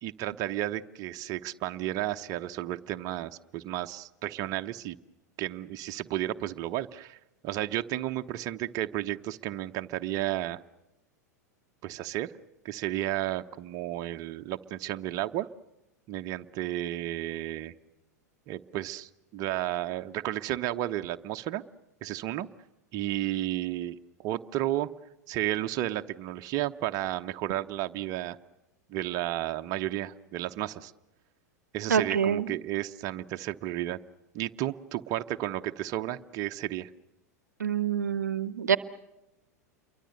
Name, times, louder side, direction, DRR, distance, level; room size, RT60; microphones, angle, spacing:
voice 1, 0.0-5.0 5.4-7.2 7.4-10.6 11.8-12.3 12.6-15.5 16.1-17.7 18.5-21.6 22.0-22.5 22.9-24.9 25.3-28.4 28.9-30.9 31.7-34.0 34.3-36.9, right 14 dB, 40° right, 8 dB, 0.9 m, -32 dB
voice 2, 31.9-32.5 37.6-38.8, right 7 dB, 75° right, 16 dB, 0.9 m, -26 dB
28.5 x 23.5 x 6.7 m, 0.96 s
figure-of-eight pair, 90°, 9 cm